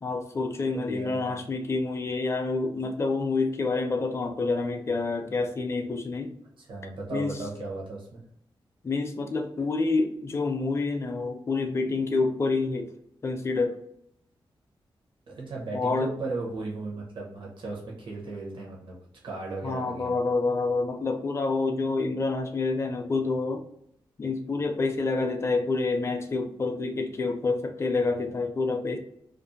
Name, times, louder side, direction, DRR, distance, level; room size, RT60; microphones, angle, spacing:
voice 1, 0.0-6.3 7.1-7.3 8.8-12.9 13.2-13.8 15.7-16.1 19.6-23.6 24.2-29.0, left 3 dB, 30° left, 4 dB, 0.4 m, -28 dB
voice 2, 0.7-1.5 6.6-8.2 15.3-19.0 19.2-20.1, right 3 dB, 65° right, -3 dB, 0.8 m, -36 dB
2.5 x 2.4 x 2.6 m, 0.74 s
wide cardioid pair, 105°, 9 cm